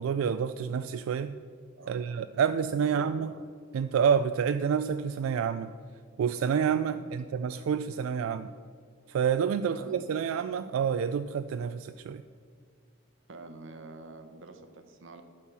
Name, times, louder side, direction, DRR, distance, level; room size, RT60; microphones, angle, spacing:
voice 1, 0.0-1.4 1.9-3.3 3.7-5.7 6.2-8.5 9.1-12.2, right 7 dB, 90° right, 10 dB, 0.3 m, -28 dB
voice 2, 1.8-2.2 2.8-3.4 6.9-7.1 9.7-10.0 13.3-15.2, right 3 dB, 65° right, 7 dB, 0.9 m, -47 dB
11.0 x 4.5 x 6.9 m, 2.1 s
head